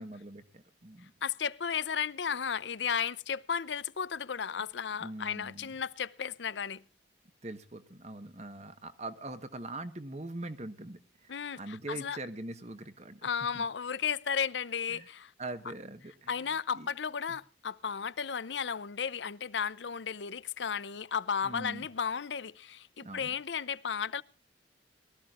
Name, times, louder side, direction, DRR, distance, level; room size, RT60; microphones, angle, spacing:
voice 1, 0.0-1.1 5.0-5.7 7.4-13.2 13.5-13.7 14.9-15.1 15.4-16.3 16.7-16.9 17.3-17.4 21.4-21.9 23.0-23.3, right 2 dB, 35° right, 1.3 m, -42 dB
voice 2, 1.2-6.8 11.3-12.2 13.2-15.3 16.3-24.2, left 7 dB, 75° left, 0.7 m, -34 dB
22.5 x 14.0 x 2.5 m
head